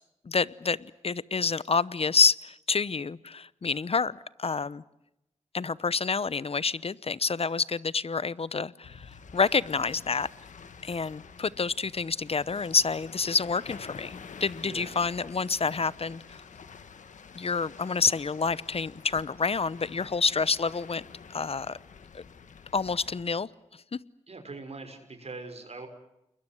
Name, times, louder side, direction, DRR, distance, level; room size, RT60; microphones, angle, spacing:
voice 1, 0.2-4.8 5.5-10.3 10.8-16.4 17.3-21.0 21.3-21.8 22.1-22.2 22.7-23.5 23.9-24.0, left 5 dB, 55° left, 20 dB, 0.9 m, -28 dB
sound 1, 8.8-23.2, left 6 dB, 90° left, 1.7 m, -48 dB
voice 2, 14.6-15.0 24.3-25.9, right 3 dB, 60° right, 6 dB, 6.3 m, -42 dB
29.5 x 21.5 x 8.0 m, 0.86 s
cardioid pair, 45°, 12 cm